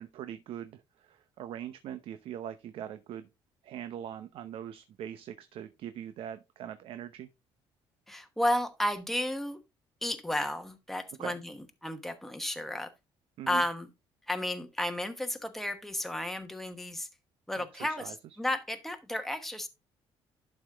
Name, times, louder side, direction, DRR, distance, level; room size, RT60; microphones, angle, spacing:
voice 1, 0.0-3.3 3.6-7.3 11.2-11.4 13.4-13.6 17.6-18.1, right 10 dB, 65° right, 0.8 m, -42 dB
voice 2, 8.1-9.6 10.0-12.9 13.5-13.9 14.3-17.1 17.5-19.7, left 1 dB, 5° left, 1.0 m, -33 dB
11.5 x 5.1 x 3.5 m
cardioid pair, 145°, 10 cm